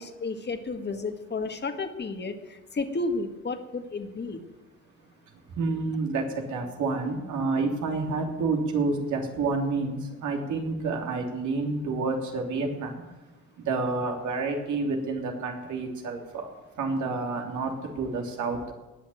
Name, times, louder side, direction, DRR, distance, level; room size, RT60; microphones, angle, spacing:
voice 1, 0.0-4.4, left 3 dB, 35° left, 7 dB, 1.8 m, -32 dB
voice 2, 5.5-12.9 13.7-16.5 16.8-18.6, right 3 dB, 75° right, 2 dB, 3.1 m, -29 dB
18.5 x 7.1 x 9.3 m, 1.1 s
cardioid pair, 90°, 30 cm